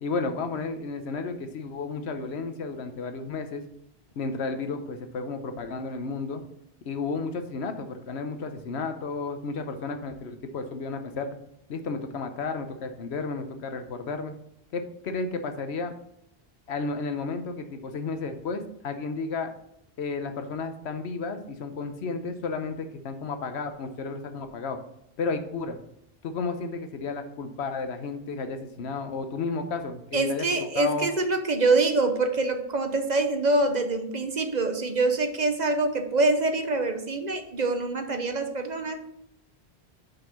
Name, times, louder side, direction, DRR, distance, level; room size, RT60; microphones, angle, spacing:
voice 1, 0.0-3.7 4.2-6.4 6.9-11.4 11.7-14.3 14.7-15.9 16.7-19.5 20.0-24.8 25.2-25.8 26.2-31.1, left 4 dB, 80° left, 7 dB, 1.1 m, -32 dB
voice 2, 30.1-39.0, right 2 dB, 45° right, 6 dB, 0.9 m, -25 dB
5.7 x 5.6 x 5.7 m, 0.80 s
omnidirectional pair, 1.1 m